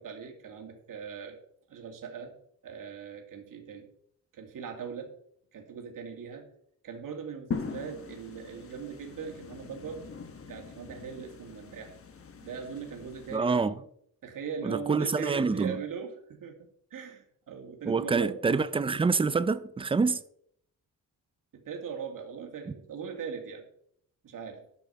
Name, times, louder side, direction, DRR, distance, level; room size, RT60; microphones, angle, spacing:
voice 1, 0.0-1.4 1.7-2.3 2.6-3.9 4.3-5.1 5.5-6.5 6.8-10.0 10.5-11.9 12.4-13.7 14.2-18.4 21.5-23.7 24.2-24.6, right 6 dB, 60° right, 2.4 m, -40 dB
sound 1, 7.5-13.4, left 5 dB, 40° left, 1.2 m, -42 dB
voice 2, 13.3-13.7 14.6-15.8 17.9-20.2, right 4 dB, 15° right, 0.4 m, -26 dB
12.0 x 6.2 x 6.8 m
wide cardioid pair, 170°, 37 cm